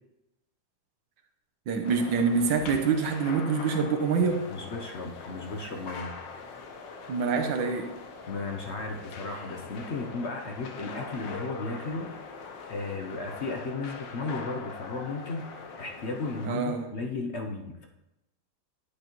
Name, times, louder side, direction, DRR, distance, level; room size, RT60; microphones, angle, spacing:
voice 1, 1.7-4.4 7.1-7.9 16.4-16.8, right 5 dB, 85° right, 5 dB, 1.6 m, -26 dB
sound 1, 1.8-16.5, left 4 dB, 85° left, 1.7 m, -42 dB
voice 2, 4.2-6.1 8.3-12.1 12.7-17.9, left 3 dB, 55° left, 3 dB, 0.8 m, -35 dB
11.0 x 8.2 x 3.0 m, 0.93 s
omnidirectional pair, 2.0 m